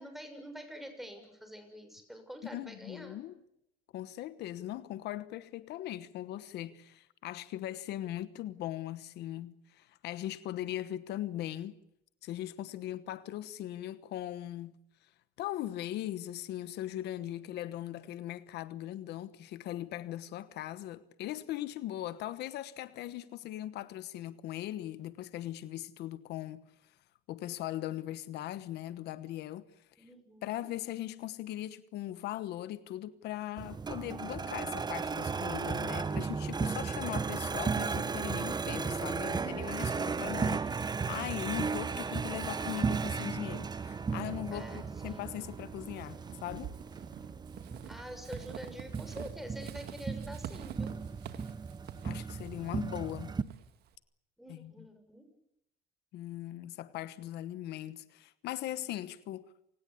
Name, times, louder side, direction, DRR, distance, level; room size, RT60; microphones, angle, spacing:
voice 1, 0.0-3.2 30.0-30.7 44.5-45.2 47.8-51.0 54.4-55.3, equal, ahead, 6.5 m, -47 dB
voice 2, 2.5-3.4 3.9-11.7 12.2-14.7 15.0-15.1 15.4-26.6 27.3-29.6 30.4-46.7 52.0-53.4 54.5-54.9 56.1-59.4, left 13 dB, 80° left, 1.2 m, -39 dB
sound 1, 33.6-53.4, right 5 dB, 25° right, 1.0 m, -35 dB
Walk footsteps / Squeak, 44.4-54.0, right 10 dB, 70° right, 2.0 m, -48 dB
28.5 x 19.0 x 8.5 m
cardioid pair, 110°, 17 cm